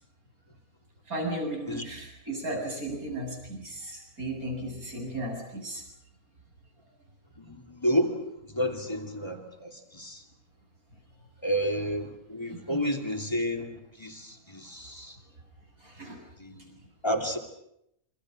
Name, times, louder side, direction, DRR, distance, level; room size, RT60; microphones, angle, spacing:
voice 1, 1.1-5.8 12.7-12.8 15.8-16.2, right 1 dB, 85° right, 1 dB, 8.5 m, -35 dB
voice 2, 7.4-10.2 11.4-15.2 16.4-16.8 17.0-17.4, equal, 20° left, 5 dB, 3.0 m, -31 dB
28.5 x 25.0 x 6.4 m, 0.77 s
omnidirectional pair, 1.5 m